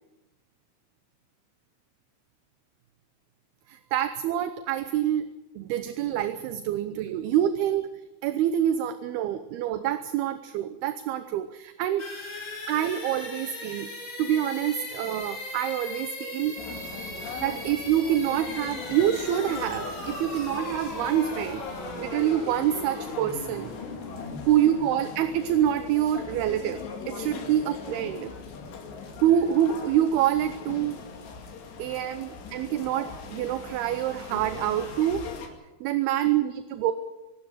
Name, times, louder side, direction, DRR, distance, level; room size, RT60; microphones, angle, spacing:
voice 1, 3.7-5.3 5.6-7.9 8.2-12.1 12.7-13.9 14.2-16.6 17.4-21.6 22.0-23.7 24.5-28.3 29.2-31.0 31.8-35.3 35.8-36.9, right 11 dB, 75° right, 11 dB, 2.7 m, -26 dB
sound 1, 12.0-25.7, left 2 dB, 45° left, 6.1 m, -38 dB
sound 2, 16.6-35.5, left 5 dB, 90° left, 4.6 m, -40 dB
25.0 x 12.5 x 9.1 m, 1.1 s
omnidirectional pair, 4.8 m